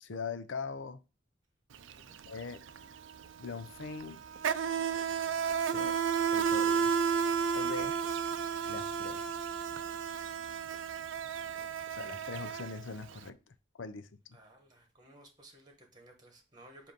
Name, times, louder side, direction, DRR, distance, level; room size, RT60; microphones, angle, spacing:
voice 1, 0.0-1.0 2.2-2.6 3.4-4.2 5.6-6.0 6.3-6.9 7.5-8.0 8.7-9.4 11.9-14.1, left 5 dB, 75° left, 0.6 m, -41 dB
Insect, 1.7-1.9 2.2-13.2, right 6 dB, 80° right, 0.5 m, -32 dB
voice 2, 14.3-16.9, right 1 dB, 20° right, 1.2 m, -57 dB
7.7 x 2.7 x 5.2 m
head